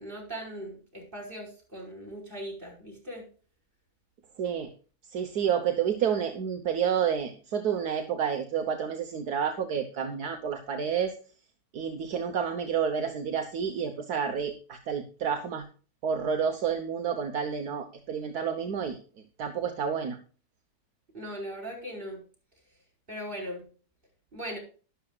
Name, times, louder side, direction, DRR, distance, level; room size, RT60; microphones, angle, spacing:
voice 1, 0.0-3.2 21.1-22.2 23.1-23.6 24.3-24.6, equal, 30° right, -1 dB, 5.1 m, -39 dB
voice 2, 4.4-4.7 5.1-11.1 11.7-15.6 16.0-19.0 19.4-20.2, right 7 dB, 70° right, 6 dB, 1.6 m, -29 dB
12.0 x 11.5 x 2.4 m, 0.37 s
omnidirectional pair, 1.7 m